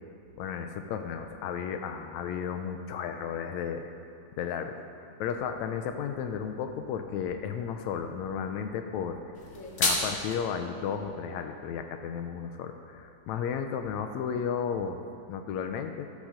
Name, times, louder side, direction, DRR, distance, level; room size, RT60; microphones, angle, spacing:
voice 1, 0.4-3.9 4.4-9.2 9.8-15.0 15.3-16.1, left 7 dB, 80° left, 6 dB, 1.9 m, -33 dB
sound 1, 9.3-10.4, left 2 dB, 40° left, 1.2 m, -29 dB
12.0 x 7.0 x 6.4 m, 2.8 s
omnidirectional pair, 3.3 m